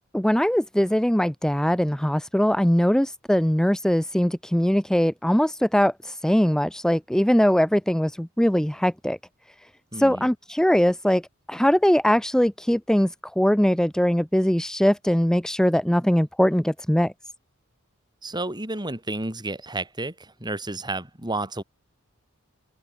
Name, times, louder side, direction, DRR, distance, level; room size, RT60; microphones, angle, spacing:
voice 1, 0.1-9.2 9.9-11.2 11.5-17.1, equal, 5° left, 0.5 m, -21 dB
voice 2, 9.9-10.3 18.2-21.6, right 2 dB, 20° right, 5.9 m, -31 dB
open air
head